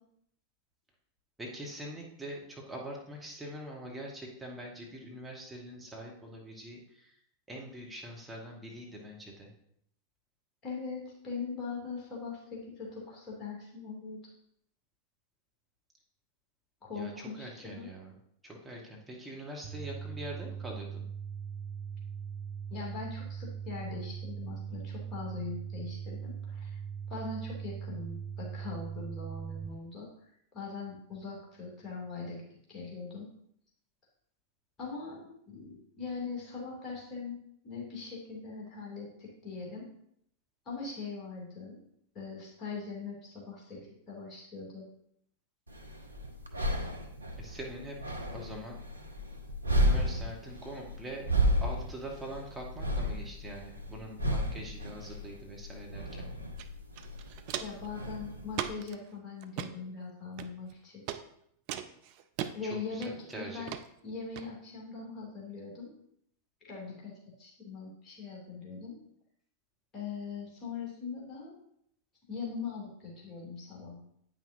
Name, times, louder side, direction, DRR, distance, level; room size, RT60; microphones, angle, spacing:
voice 1, 1.4-7.2 7.5-9.5 16.9-18.1 18.4-21.0 47.4-48.8 49.8-51.3 51.6-56.3 62.9-63.7, right 1 dB, 5° right, -2 dB, 1.4 m, -43 dB
voice 2, 10.6-14.2 16.8-17.9 22.7-26.8 27.1-32.4 32.7-33.3 34.8-37.4 37.6-39.9 40.7-41.8 42.1-44.8 57.6-61.0 62.5-63.7 64.0-65.9 66.6-67.1 67.4-69.0 69.9-71.5 72.3-74.0, left 4 dB, 30° left, -3 dB, 2.6 m, -41 dB
sound 1, 19.6-29.6, right 7 dB, 30° right, 2.2 m, -40 dB
sound 2, 45.7-58.7, equal, 80° right, 0.7 m, -33 dB
Walk footsteps, 56.6-56.7 56.9-57.9 58.5-58.9 59.4-59.7 60.4-60.7 61.1-61.2 61.7-62.5 63.0-63.3 63.7-63.8 64.4-64.5, right 10 dB, 45° right, 0.4 m, -37 dB
9.0 x 5.9 x 2.7 m, 0.70 s
figure-of-eight pair, 90°, 0 cm